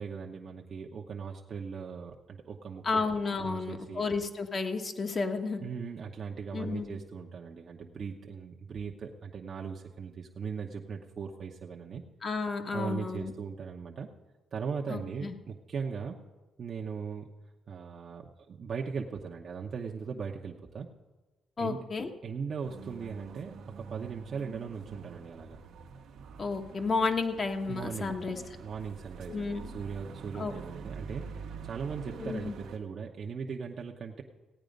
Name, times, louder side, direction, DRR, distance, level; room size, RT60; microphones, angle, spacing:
voice 1, 0.0-3.0 3.4-4.1 5.6-12.0 12.7-14.1 14.5-16.2 16.6-17.3 17.7-20.9 21.6-21.8 22.2-25.6 27.7-34.2, right 6 dB, 50° right, -1 dB, 0.9 m, -39 dB
voice 2, 2.8-5.6 6.5-6.9 12.2-13.3 14.9-15.3 21.6-22.1 26.4-28.4 29.3-29.8 30.3-30.5 32.2-32.5, left 4 dB, 40° left, 4 dB, 1.3 m, -32 dB
sound 1, 22.6-32.8, right 6 dB, 80° right, 1.1 m, -46 dB
16.0 x 9.1 x 5.2 m, 1.2 s
cardioid pair, 90°, 0 cm